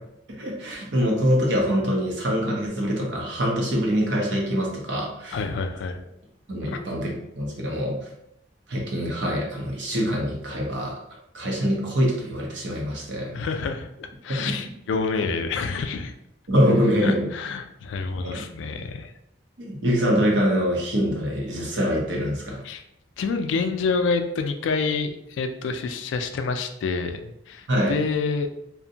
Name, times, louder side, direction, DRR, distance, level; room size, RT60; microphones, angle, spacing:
voice 1, 0.4-5.4 6.5-8.0 8.7-10.9 11.3-13.3 14.4-14.5 16.5-17.2 18.3-18.4 19.6-22.6 27.7-28.0, equal, 65° right, -1 dB, 0.7 m, -24 dB
voice 2, 5.3-6.0 6.7-6.8 13.3-16.1 17.0-19.1 22.6-22.8 23.2-28.5, left 4 dB, 75° left, 7 dB, 0.3 m, -28 dB
2.6 x 2.1 x 2.7 m, 0.79 s
head